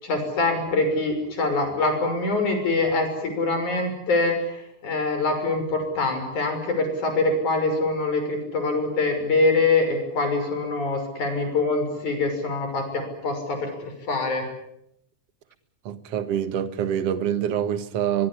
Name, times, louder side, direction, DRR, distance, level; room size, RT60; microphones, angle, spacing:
voice 1, 0.0-14.4, left 3 dB, 80° left, 7.5 m, -24 dB
voice 2, 15.9-18.3, right 9 dB, 60° right, 2.3 m, -25 dB
23.5 x 23.5 x 10.0 m
omnidirectional pair, 3.4 m